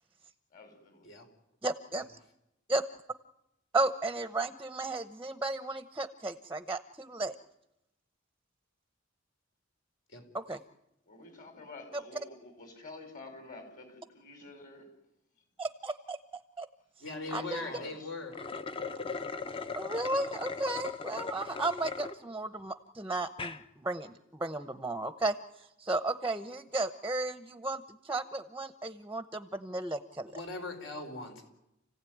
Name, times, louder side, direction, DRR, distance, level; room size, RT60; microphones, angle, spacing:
voice 1, 0.5-1.1 11.1-14.9 17.2-18.1, left 3 dB, 45° left, 5.6 m, -49 dB
voice 2, 1.6-2.0 2.7-2.8 3.7-7.3 10.3-10.6 15.6-16.2 16.6-16.7 17.3-17.6 19.7-25.4 25.8-30.4, right 2 dB, 10° right, 0.9 m, -34 dB
voice 3, 17.0-18.4 30.3-31.5, left 3 dB, 65° left, 5.0 m, -40 dB
sound 1, 18.2-22.1 22.7-22.8 23.2-23.6, left 4 dB, 25° left, 1.0 m, -39 dB
29.5 x 16.0 x 9.4 m
head